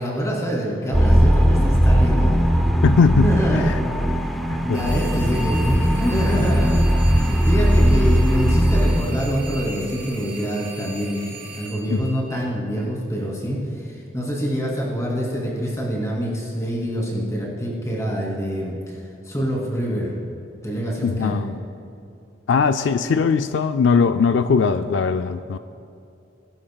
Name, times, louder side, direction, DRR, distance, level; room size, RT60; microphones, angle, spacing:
voice 1, 0.0-2.3 3.1-3.7 4.6-19.0 19.2-20.2 20.6-21.4, equal, 15° left, -4 dB, 2.8 m, -26 dB
sound 1, 0.9-9.0, equal, ahead, 0.6 m, -18 dB
voice 2, 2.8-3.8 4.5-4.8 11.9-12.1 21.0-21.6 22.5-25.6, left 5 dB, 80° left, 9 dB, 0.4 m, -20 dB
sound 2, 4.7-12.9, right 2 dB, 50° right, 2.6 m, -39 dB
20.0 x 11.5 x 2.3 m, 2.6 s
head